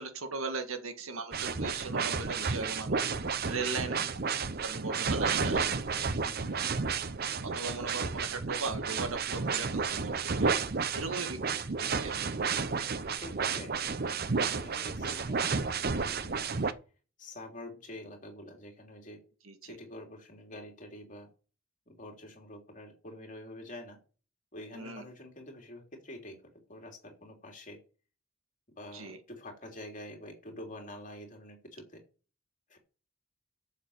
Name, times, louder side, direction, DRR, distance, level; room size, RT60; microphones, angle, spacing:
voice 1, 0.0-3.1 3.5-4.0 4.6-5.8 7.4-10.5 10.9-11.4 11.8-12.3 19.4-19.8 24.7-25.0 28.9-29.2, right 3 dB, 85° right, 1.9 m, -38 dB
sound 1, 1.3-16.7, right 5 dB, 45° right, 0.7 m, -32 dB
voice 2, 3.5-4.0 6.2-6.8 10.9-11.2 12.9-14.0 14.5-16.7 17.2-19.2 19.6-21.3 21.9-24.0 24.5-26.4 26.7-27.8 28.7-32.0 32.7-32.8, left 1 dB, 40° left, 3.1 m, -47 dB
8.5 x 7.2 x 7.1 m
head